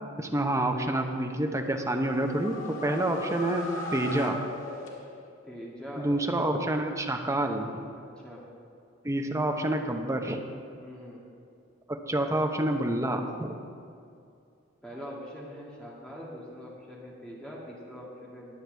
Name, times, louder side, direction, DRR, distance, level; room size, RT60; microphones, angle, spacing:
voice 1, 0.2-4.4 6.0-7.7 9.0-10.4 11.9-13.6, right 1 dB, 15° right, 3 dB, 0.9 m, -28 dB
sound 1, 1.6-5.4, left 1 dB, 80° left, 2.0 m, -38 dB
voice 2, 5.4-6.2 7.9-8.5 10.8-11.2 14.8-18.6, equal, 5° left, -5 dB, 2.3 m, -43 dB
21.0 x 7.9 x 3.4 m, 2.5 s
head